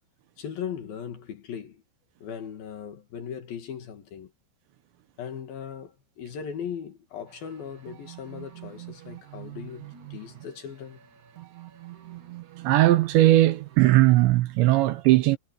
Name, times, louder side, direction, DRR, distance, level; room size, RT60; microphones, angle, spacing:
voice 1, 0.4-1.8 2.2-4.3 5.2-11.0, left 8 dB, 55° left, 3.1 m, -38 dB
sound 1, 7.3-13.8, right 15 dB, 50° right, 2.7 m, -45 dB
voice 2, 12.6-15.4, right 16 dB, 75° right, 2.9 m, -19 dB
omnidirectional pair, 5.8 m